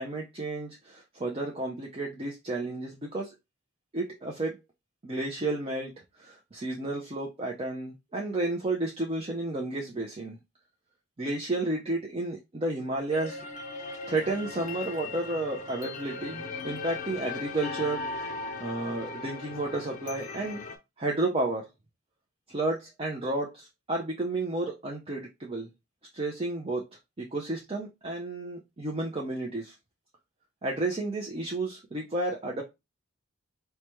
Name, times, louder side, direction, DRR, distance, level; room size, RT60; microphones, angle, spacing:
voice 1, 0.0-3.3 3.9-4.6 5.0-5.9 6.2-10.4 11.2-13.4 14.1-18.3 18.6-20.6 21.0-21.7 22.5-25.7 26.1-26.8 27.2-29.7 30.6-32.6, right 2 dB, 25° right, 0.5 m, -32 dB
sound 1, 13.1-20.8, left 3 dB, 35° left, 0.5 m, -38 dB
4.7 x 2.2 x 2.9 m
head